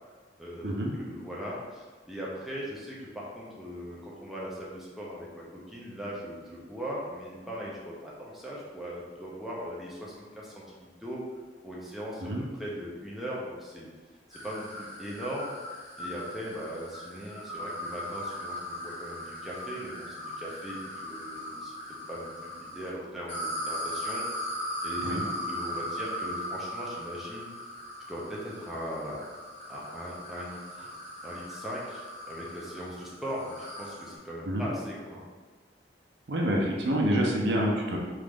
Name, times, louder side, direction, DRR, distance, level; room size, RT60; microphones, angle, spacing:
voice 1, 0.4-11.2 11.6-12.2 12.6-13.9 14.3-15.6 16.0-21.7 22.1-27.7 28.1-29.2 29.7-30.9 31.2-35.2, equal, ahead, -6 dB, 0.5 m, -39 dB
sound 1, 14.3-22.9 23.3-34.2, equal, 35° left, 1.3 m, -38 dB
voice 2, 36.3-38.0, equal, 70° right, -1 dB, 0.6 m, -27 dB
3.1 x 2.5 x 3.4 m, 1.4 s
head